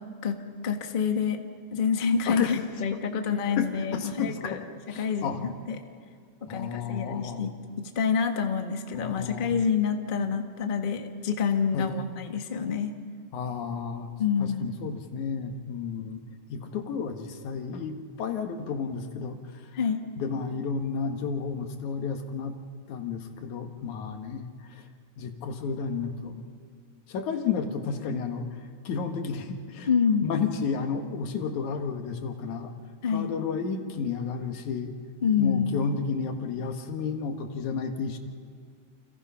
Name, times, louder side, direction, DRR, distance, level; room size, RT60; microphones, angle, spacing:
voice 1, 0.2-1.4 1.7-4.6 4.9-5.8 6.5-12.9 14.2-14.7 19.7-20.0 29.9-30.3 33.0-33.3 35.2-35.8, left 6 dB, 35° left, 5 dB, 0.8 m, -27 dB
voice 2, 2.3-2.6 3.6-4.6 4.9-5.4 6.5-7.5 8.9-9.5 11.7-11.9 13.3-14.1 14.4-16.2 16.5-19.4 20.1-22.5 22.9-24.8 25.2-26.4 27.1-28.5 28.8-29.9 30.2-32.7 33.1-34.9 35.4-38.2, left 6 dB, 85° left, 5 dB, 3.0 m, -32 dB
29.5 x 27.5 x 5.8 m, 2.1 s
omnidirectional pair, 3.3 m